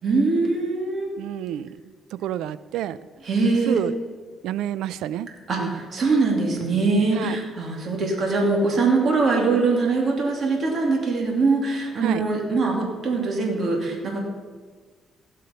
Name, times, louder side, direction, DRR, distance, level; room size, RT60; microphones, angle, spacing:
voice 1, 0.0-1.1 3.2-3.8 5.5-14.2, right 3 dB, 50° right, 0 dB, 2.7 m, -22 dB
voice 2, 1.2-1.8 2.1-3.0 3.7-3.9 4.4-5.3 5.6-5.8 7.1-7.4 12.0-12.3, right 12 dB, 85° right, 17 dB, 0.4 m, -28 dB
16.5 x 5.7 x 5.3 m, 1.5 s
cardioid pair, 90°, 0 cm